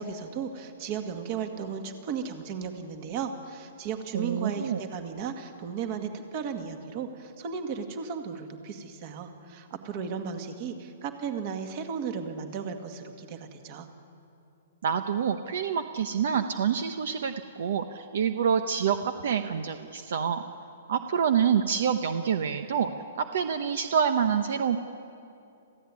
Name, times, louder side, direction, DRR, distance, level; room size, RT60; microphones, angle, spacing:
voice 1, 0.0-13.9, right 6 dB, 30° right, 6 dB, 1.9 m, -35 dB
voice 2, 4.1-4.8 14.8-20.4 20.9-22.9 23.2-24.8, right 7 dB, 60° right, 9 dB, 1.0 m, -27 dB
27.5 x 15.5 x 9.7 m, 2.7 s
hypercardioid pair, 170°, 0 cm